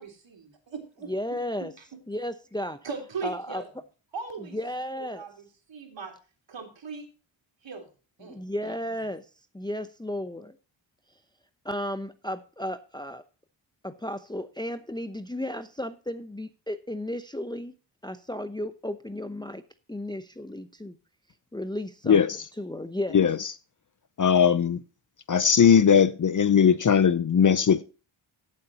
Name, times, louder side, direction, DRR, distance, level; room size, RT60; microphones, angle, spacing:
voice 1, 0.0-2.0 2.8-3.7 4.1-4.6 4.9-6.1 6.5-7.1 7.6-7.9 8.2-8.8, right 5 dB, 60° right, 3.7 m, -39 dB
voice 2, 1.1-1.7 2.1-2.8 3.2-3.6 4.5-5.3 8.2-9.3 9.5-10.6 11.6-13.2 13.8-17.7 18.0-19.6 19.9-21.0 21.5-22.2 22.6-23.2, left 1 dB, 10° left, 0.8 m, -34 dB
voice 3, 24.2-24.8 25.3-27.8, left 7 dB, 40° left, 0.7 m, -19 dB
16.0 x 7.7 x 2.9 m
cardioid pair, 70°, 49 cm